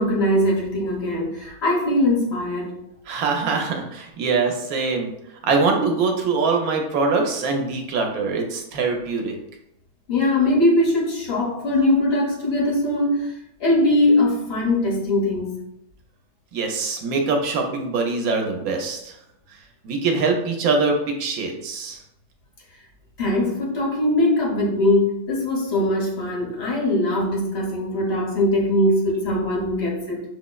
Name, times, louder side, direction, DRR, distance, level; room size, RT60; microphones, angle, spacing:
voice 1, 0.0-2.7 10.1-15.5 23.2-30.2, left 1 dB, 50° left, -2 dB, 1.1 m, -21 dB
voice 2, 3.1-5.1 5.4-9.3 16.5-19.1 19.8-22.0, right 4 dB, 90° right, 3 dB, 1.1 m, -23 dB
5.9 x 2.0 x 2.2 m, 0.82 s
omnidirectional pair, 1.5 m